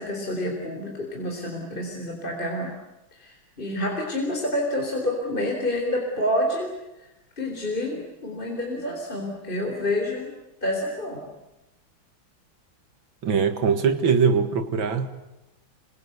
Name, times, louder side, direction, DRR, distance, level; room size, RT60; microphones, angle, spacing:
voice 1, 0.0-2.7 3.1-6.7 7.0-7.1 7.4-10.3 10.6-11.2, left 1 dB, 25° left, 1 dB, 4.2 m, -28 dB
voice 2, 13.2-15.1, right 6 dB, 80° right, 10 dB, 2.6 m, -21 dB
27.0 x 24.5 x 8.1 m, 0.98 s
omnidirectional pair, 2.1 m